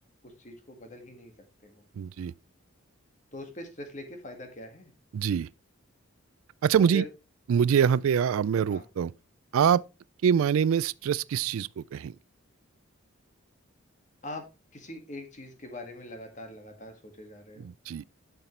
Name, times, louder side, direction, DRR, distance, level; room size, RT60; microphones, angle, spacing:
voice 1, 0.2-1.3 1.6-1.8 3.3-4.9 6.8-7.1 8.7-8.9 14.2-14.5 14.7-17.7, equal, 35° left, 1.9 m, -42 dB
voice 2, 2.0-2.3 5.1-5.5 6.6-7.0 7.5-9.1 9.5-9.8 10.2-12.1 17.6-18.0, right 7 dB, 75° right, 0.3 m, -24 dB
11.0 x 5.9 x 3.2 m
head